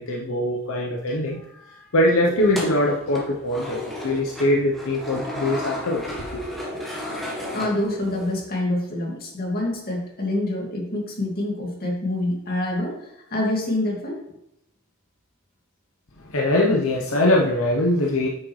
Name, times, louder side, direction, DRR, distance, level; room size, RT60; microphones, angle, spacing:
voice 1, 0.0-1.4 1.9-6.5 16.2-18.3, left 1 dB, 70° left, -1 dB, 0.9 m, -22 dB
sound 1, 2.4-8.4, left 1 dB, ahead, 1.3 m, -34 dB
voice 2, 7.5-14.2, left 1 dB, 40° left, -2 dB, 2.2 m, -26 dB
8.8 x 6.2 x 3.2 m, 0.82 s
head